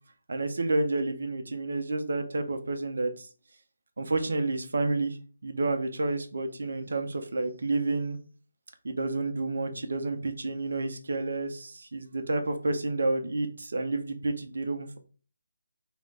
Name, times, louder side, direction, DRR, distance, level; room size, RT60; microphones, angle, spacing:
voice 1, 0.3-3.3 4.0-5.2 5.4-8.2 8.8-15.0, right 2 dB, 55° right, 7 dB, 0.4 m, -30 dB
2.2 x 2.0 x 3.5 m, 0.38 s
figure-of-eight pair, 150°, 0 cm